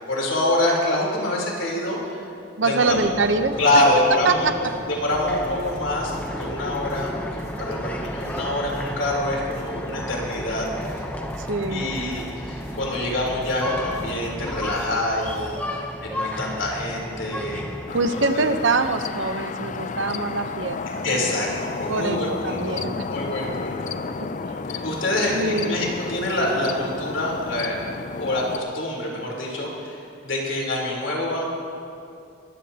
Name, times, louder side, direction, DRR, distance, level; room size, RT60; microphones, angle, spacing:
voice 1, 0.1-2.2 2.7-3.1 3.6-4.5 4.9-10.7 11.7-17.7 18.1-18.5 21.0-22.8 23.0-23.9 24.7-27.8 28.1-31.4, left 1 dB, 75° left, -2 dB, 3.7 m, -25 dB
voice 2, 2.6-3.5 4.2-4.5 11.4-11.8 17.9-21.1 21.9-22.2 22.4-23.0 25.3-25.8, right 3 dB, 65° right, 8 dB, 0.8 m, -24 dB
sound 1, 2.9-17.9, left 1 dB, 5° left, 0.7 m, -34 dB
sound 2, 5.1-15.7, equal, 15° right, 2.0 m, -41 dB
sound 3, 17.9-28.6, left 4 dB, 40° left, 0.4 m, -32 dB
23.5 x 15.0 x 2.9 m, 2.5 s
head